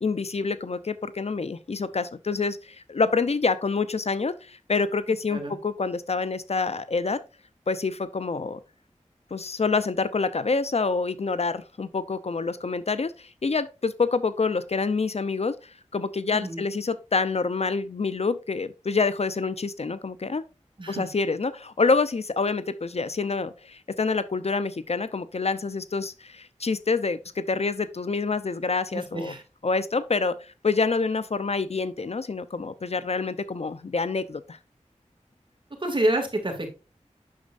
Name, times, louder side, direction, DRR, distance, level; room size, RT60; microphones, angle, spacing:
voice 1, 0.0-7.2 7.7-8.6 9.3-20.4 20.9-29.3 29.6-34.6, left 4 dB, 55° left, 0.5 m, -27 dB
voice 2, 16.3-16.6 20.8-21.1 28.9-29.4 35.8-36.7, right 1 dB, 40° right, 2.3 m, -28 dB
8.5 x 6.3 x 2.5 m
wide cardioid pair, 50°, 13 cm